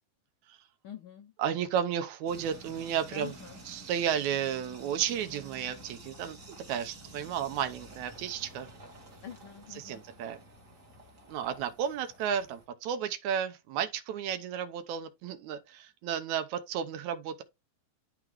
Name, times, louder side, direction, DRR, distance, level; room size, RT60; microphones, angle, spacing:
voice 1, 0.8-1.3 3.1-3.6 9.2-10.0, left 9 dB, 85° left, 1.1 m, -45 dB
voice 2, 1.4-3.3 3.7-6.4 6.7-8.7 9.7-10.4 11.3-17.4, right 9 dB, 80° right, 2.2 m, -33 dB
sound 1, 2.3-12.7, right 2 dB, 35° right, 1.3 m, -51 dB
11.5 x 3.9 x 3.0 m
omnidirectional pair, 3.3 m